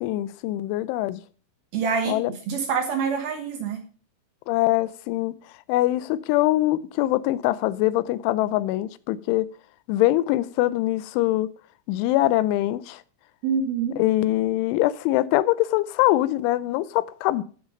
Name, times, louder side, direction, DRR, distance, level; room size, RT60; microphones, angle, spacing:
voice 1, 0.0-1.2 2.1-2.3 4.5-5.3 5.7-9.5 9.9-11.5 11.9-13.0 14.0-17.4, left 16 dB, 80° left, 2.9 m, -23 dB
voice 2, 1.7-3.8 13.4-14.0, right 6 dB, 65° right, 2.6 m, -26 dB
12.5 x 6.5 x 5.2 m
omnidirectional pair, 5.8 m